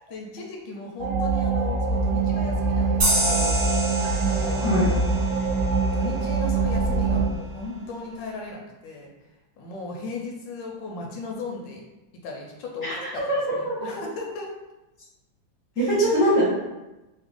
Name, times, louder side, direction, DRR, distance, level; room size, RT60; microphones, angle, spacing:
voice 1, 0.1-3.6 4.3-4.8 5.9-9.1 9.6-11.8 12.2-13.2 13.5-14.5 15.8-15.9, left 3 dB, 75° left, 0 dB, 1.3 m, -36 dB
sound 1, 1.0-7.3, right 4 dB, 75° right, 1.1 m, -24 dB
sound 2, 3.0-6.3, equal, 45° right, 0.8 m, -28 dB
voice 2, 12.8-13.9 15.7-16.4, equal, 5° right, -8 dB, 0.7 m, -23 dB
3.4 x 2.1 x 3.6 m, 1.0 s
omnidirectional pair, 2.1 m